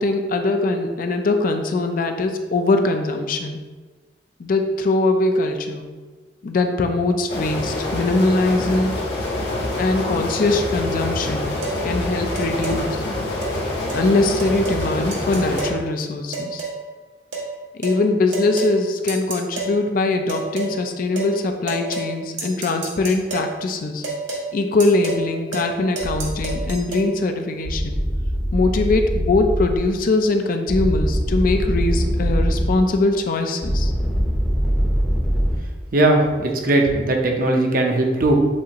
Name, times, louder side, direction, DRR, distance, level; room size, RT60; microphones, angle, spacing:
voice 1, 0.0-3.6 4.4-5.9 6.4-8.9 9.7-11.5 11.8-13.0 13.9-16.6 17.7-24.0 24.5-28.0 28.5-33.9, left 2 dB, 55° left, 6 dB, 0.4 m, -21 dB
sound 1, 7.3-15.7, left 1 dB, 70° left, 1.3 m, -26 dB
sound 2, 11.6-11.8 12.4-12.8 13.4-13.6 13.9-14.0 14.4-14.8 15.1-15.8 16.3-16.8 17.3-17.5 17.8-18.0 18.3-18.7 19.1-19.7 20.3-20.7 21.2-21.3 21.7-22.1 22.4-23.5 24.0-24.5 24.8-25.2 25.5-25.7 26.0-27.1, right 3 dB, 85° right, 1.2 m, -29 dB
sound 3, 26.0-26.7 27.6-29.8 30.7-32.7 33.6-35.6, equal, ahead, 0.6 m, -22 dB
voice 2, 35.9-38.3, right 2 dB, 55° right, 2 dB, 0.7 m, -18 dB
7.2 x 2.5 x 2.9 m, 1.3 s
head